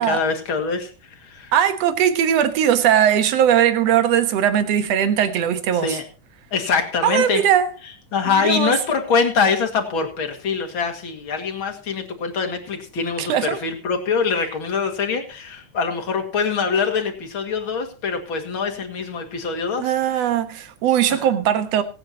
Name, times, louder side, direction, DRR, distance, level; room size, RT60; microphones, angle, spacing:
voice 1, 0.0-1.5 5.8-6.0 6.5-7.4 8.1-20.3 21.1-21.2, left 5 dB, 45° left, 2.5 m, -24 dB
voice 2, 1.5-6.0 7.0-7.7 8.4-8.7 13.2-13.6 19.8-21.8, right 9 dB, 60° right, 2.2 m, -19 dB
25.5 x 9.2 x 2.9 m
omnidirectional pair, 3.5 m